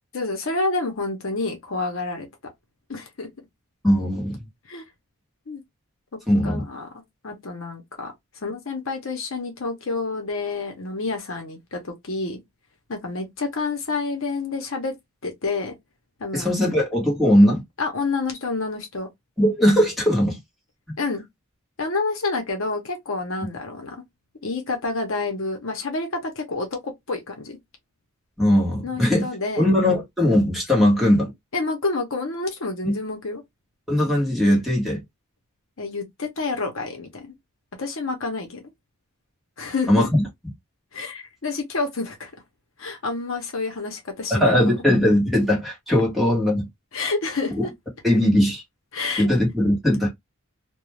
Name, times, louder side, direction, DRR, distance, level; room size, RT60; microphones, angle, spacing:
voice 1, 0.1-2.3 2.9-3.3 4.7-4.8 5.5-5.6 6.4-6.9 7.2-8.1 8.4-12.4 12.9-14.9 15.2-15.7 16.2-16.5 17.8-19.1 21.0-21.2 21.8-24.0 24.4-27.6 28.8-29.7 31.5-33.4 35.8-37.3 37.8-38.7 39.6-40.1 40.9-42.3 42.8-44.6 46.9-47.7 48.9-49.3, left 3 dB, 65° left, 0.8 m, -28 dB
voice 2, 3.8-4.5 6.3-6.6 16.3-17.6 19.4-20.4 28.4-29.3 29.6-31.3 32.8-33.0 33.9-35.0 39.9-40.2 44.3-46.7 48.0-48.6 49.2-50.1, left 1 dB, ahead, 1.1 m, -19 dB
2.4 x 2.2 x 3.1 m
head